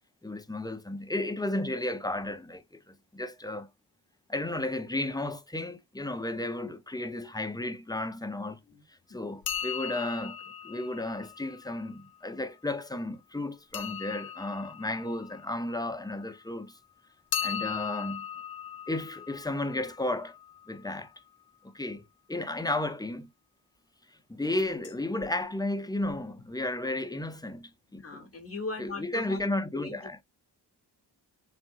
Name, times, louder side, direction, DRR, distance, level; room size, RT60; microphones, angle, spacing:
voice 1, 0.2-3.7 4.3-8.6 8.9-10.4 10.6-16.8 17.4-18.2 18.9-20.4 20.7-21.1 21.7-22.0 22.3-23.3 24.3-28.3 28.8-30.2, left 2 dB, 10° left, 0.6 m, -33 dB
voice 2, 8.7-9.2 27.9-29.4 29.7-30.2, left 3 dB, 35° left, 1.1 m, -39 dB
sound 1, 9.4-12.2 13.7-16.4 17.3-21.1 24.6-24.9 25.2-25.3 26.0-26.1 26.4-26.5, left 8 dB, 60° left, 0.6 m, -39 dB
4.3 x 3.6 x 2.5 m
wide cardioid pair, 100°, 42 cm